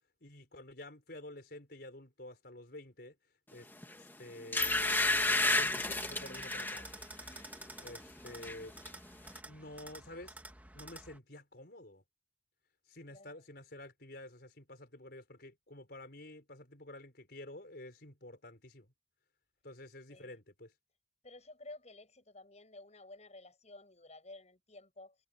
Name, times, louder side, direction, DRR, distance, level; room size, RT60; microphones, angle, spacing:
voice 1, 0.2-3.1 3.5-3.7 4.0-6.8 7.8-8.7 9.5-10.4 10.7-12.0 12.8-18.9 19.6-20.7, left 1 dB, 60° left, 5.0 m, -50 dB
sound 1, 3.8-4.0 4.5-6.8 7.3-7.5 7.9-8.6 8.9-9.0, left 2 dB, 10° left, 1.8 m, -31 dB
sound 2, 4.6-11.2, right 1 dB, 10° right, 1.5 m, -49 dB
voice 2, 13.1-13.5 20.1-20.4 21.2-25.2, left 2 dB, 40° left, 7.7 m, -53 dB
head